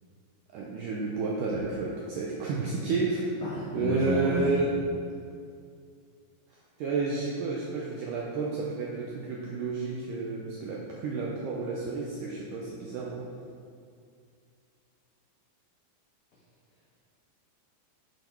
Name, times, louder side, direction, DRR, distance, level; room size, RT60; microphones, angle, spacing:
voice 1, 0.5-3.3 3.7-4.7 6.8-13.2, right 3 dB, 80° right, -3 dB, 1.8 m, -31 dB
voice 2, 3.4-4.6, equal, 80° left, -7 dB, 1.3 m, -31 dB
8.1 x 5.1 x 4.5 m, 2.2 s
omnidirectional pair, 4.5 m